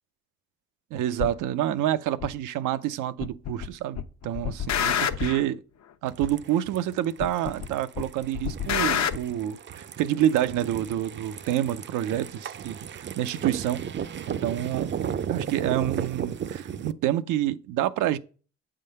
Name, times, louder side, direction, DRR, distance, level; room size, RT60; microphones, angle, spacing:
voice 1, 0.9-5.6 6.0-13.8 14.3-14.9 15.3-18.2, right 12 dB, 90° right, 0.6 m, -28 dB
sound 1, 1.2-1.3 2.2-2.3 3.2-3.7 4.0-5.4 6.2-6.3 7.2-7.7 8.0-9.2, left 9 dB, 65° left, 0.8 m, -27 dB
sound 2, 6.1-16.9, right 8 dB, 40° right, 0.5 m, -35 dB
8.2 x 3.8 x 6.5 m
cardioid pair, 90°, 30 cm